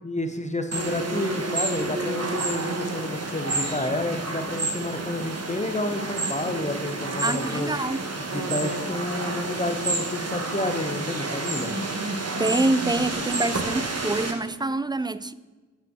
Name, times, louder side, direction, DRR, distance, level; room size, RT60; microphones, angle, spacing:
voice 1, 0.0-7.7 8.3-11.8, left 2 dB, 20° left, 1.0 m, -30 dB
sound 1, 0.7-14.3, right 3 dB, 50° right, 1.2 m, -30 dB
voice 2, 7.2-8.1 8.4-8.5 12.4-15.3, right 2 dB, 15° right, 0.4 m, -26 dB
6.9 x 5.6 x 6.1 m
cardioid pair, 40°, 32 cm